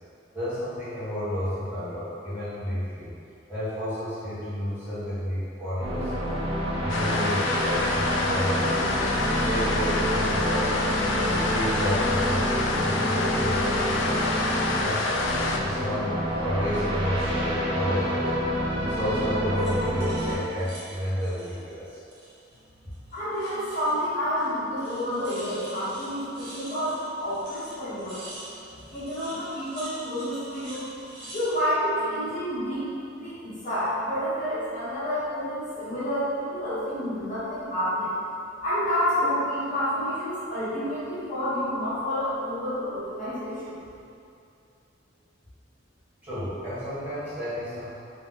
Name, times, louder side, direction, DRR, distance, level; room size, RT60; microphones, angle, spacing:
voice 1, 0.3-3.1 3.5-6.3 6.8-8.9 9.2-10.8 11.2-14.4 14.8-16.1 16.4-18.5 18.8-22.0 28.7-28.8 46.2-47.9, equal, 10° right, -15 dB, 1.4 m, -31 dB
sound 1, 5.8-20.3, equal, 30° right, 0.5 m, -28 dB
sound 2, 6.9-15.6, left 2 dB, 80° left, 0.4 m, -27 dB
sound 3, 16.3-16.6 18.3-18.7 19.5-22.6 22.9-24.1 24.4-24.5 24.8-31.5, right 1 dB, 65° right, 1.0 m, -46 dB
voice 2, 23.1-28.3 28.9-30.9 31.3-32.8 33.2-38.1 38.6-43.8, equal, 45° left, -12 dB, 1.3 m, -29 dB
3.1 x 2.8 x 3.7 m, 2.6 s
head